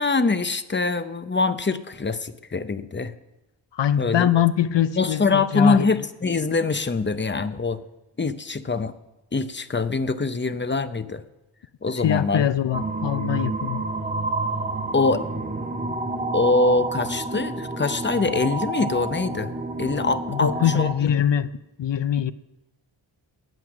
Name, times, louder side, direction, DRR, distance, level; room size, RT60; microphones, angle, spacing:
voice 1, 0.0-3.1 4.0-4.3 5.0-7.8 8.2-8.9 9.3-11.2 11.8-12.5 14.9-15.2 16.3-19.5 19.8-21.1, left 3 dB, 25° left, 12 dB, 0.7 m, -24 dB
voice 2, 3.8-5.9 12.0-13.8 20.3-21.5 21.8-22.3, left 10 dB, 65° left, 15 dB, 0.6 m, -22 dB
sound 1, 12.7-20.9, right 2 dB, 15° right, 1.4 m, -29 dB
20.0 x 7.9 x 6.0 m, 1.0 s
wide cardioid pair, 115°, 47 cm